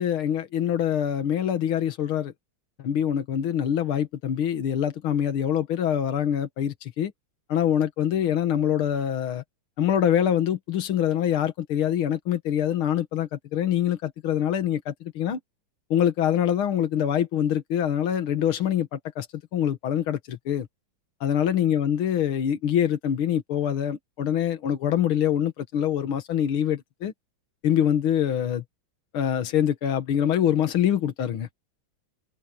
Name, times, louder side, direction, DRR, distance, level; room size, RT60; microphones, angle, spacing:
voice 1, 0.0-2.3 2.8-7.1 7.5-9.4 9.8-15.4 15.9-19.3 19.5-20.7 21.2-27.1 27.6-28.6 29.1-31.5, left 10 dB, 80° left, 2.2 m, -24 dB
omnidirectional pair, 2.3 m